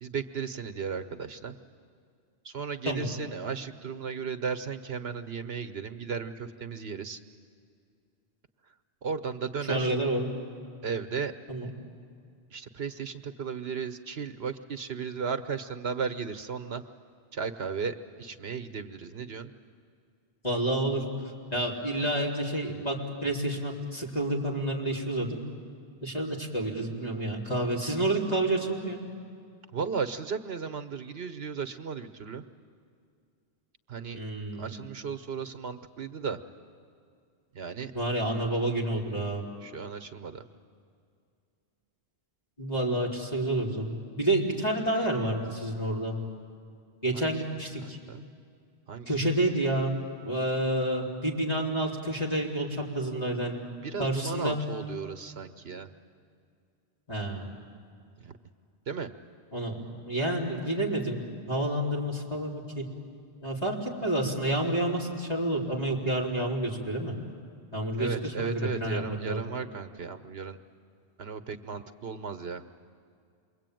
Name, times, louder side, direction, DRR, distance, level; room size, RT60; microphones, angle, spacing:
voice 1, 0.0-1.6 2.4-7.2 9.0-9.9 10.8-11.3 12.5-16.8 17.3-19.5 29.7-32.4 33.9-34.2 34.5-36.4 37.5-37.9 39.1-39.2 39.6-40.4 47.1-47.4 47.8-48.3 48.9-49.3 53.8-55.9 58.2-58.4 58.9-59.1 68.0-70.6 71.2-72.6, right 5 dB, 70° right, 9 dB, 1.2 m, -35 dB
voice 2, 9.7-10.3 11.5-11.7 20.4-21.0 21.5-23.0 23.2-25.4 26.0-29.0 34.1-34.7 37.9-39.4 42.6-46.2 47.0-48.0 49.1-49.9 50.2-53.6 54.0-54.6 57.1-57.4 59.5-61.2 61.5-62.8 63.4-67.1 67.7-69.4, right 1 dB, 40° left, -3 dB, 3.9 m, -29 dB
28.0 x 22.5 x 9.2 m, 2.4 s
omnidirectional pair, 1.1 m